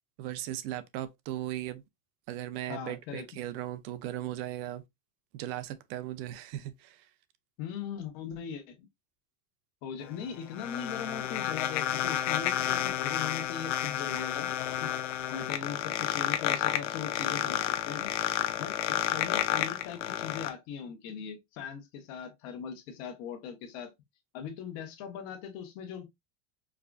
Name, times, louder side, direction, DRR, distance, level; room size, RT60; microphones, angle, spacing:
voice 1, 0.2-1.8 2.3-4.8 5.3-7.1, right 13 dB, 50° right, 0.5 m, -37 dB
voice 2, 2.7-3.2 7.6-8.9 9.8-14.5 14.8-18.1 18.6-23.9 24.3-26.0, left 7 dB, 55° left, 1.2 m, -40 dB
sound 1, 10.0-20.5, left 12 dB, 80° left, 0.7 m, -31 dB
4.7 x 2.4 x 2.3 m
supercardioid pair, 160°, 36 cm